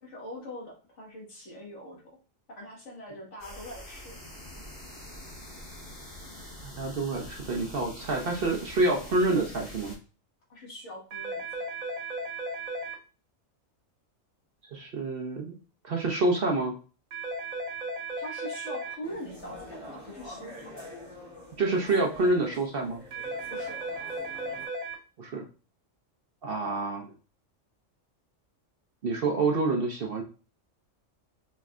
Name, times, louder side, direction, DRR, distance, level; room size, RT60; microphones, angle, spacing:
voice 1, 0.0-2.2 2.5-4.2 10.5-11.7 18.2-19.6 19.9-20.7 23.5-23.8, equal, 65° left, -3 dB, 1.7 m, -43 dB
sound 1, 3.4-10.0, left 1 dB, 15° left, 1.4 m, -45 dB
voice 2, 6.6-10.0 14.7-15.6 15.8-16.7 21.6-23.0 25.2-25.4 26.4-27.1 29.0-30.2, right 2 dB, 55° right, 1 dB, 0.8 m, -27 dB
sound 2, 11.1-12.9 17.1-18.9 23.1-24.9, right 2 dB, 80° right, 1.4 m, -35 dB
sound 3, 19.0-24.7, left 1 dB, 15° right, 1.6 m, -46 dB
4.2 x 3.1 x 2.4 m, 0.35 s
omnidirectional pair, 1.3 m